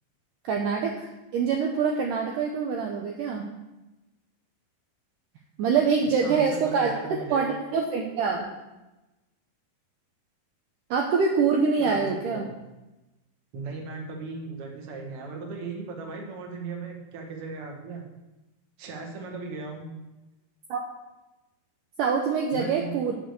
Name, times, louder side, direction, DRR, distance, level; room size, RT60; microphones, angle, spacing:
voice 1, 0.4-3.4 5.6-8.5 10.9-12.5 20.7-20.8 22.0-23.1, right 5 dB, 80° right, 1 dB, 1.9 m, -25 dB
voice 2, 6.2-7.5 11.8-12.5 13.5-18.0 18.8-19.9 22.5-23.0, right 4 dB, 55° right, 1 dB, 1.7 m, -37 dB
10.0 x 4.6 x 7.8 m, 1.0 s
omnidirectional pair, 4.6 m